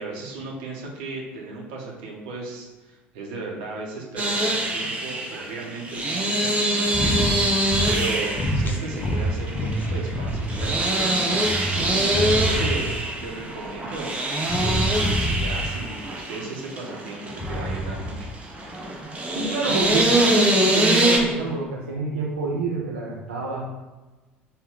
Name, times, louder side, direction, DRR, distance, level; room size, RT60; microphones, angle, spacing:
voice 1, 0.0-7.4 7.6-11.3 11.8-14.1 14.6-18.3, right 3 dB, 65° right, -2 dB, 0.8 m, -35 dB
sound 1, 4.2-21.2, right 1 dB, 20° right, 0.7 m, -24 dB
sound 2, 6.9-7.4 7.6-8.1 8.3-10.7 11.2-13.1 14.4-15.9 17.3-18.3, equal, 30° left, 0.5 m, -27 dB
voice 2, 19.3-23.7, right 3 dB, 80° right, -5 dB, 0.4 m, -27 dB
3.2 x 2.1 x 3.7 m, 1.2 s
figure-of-eight pair, 65°, 6 cm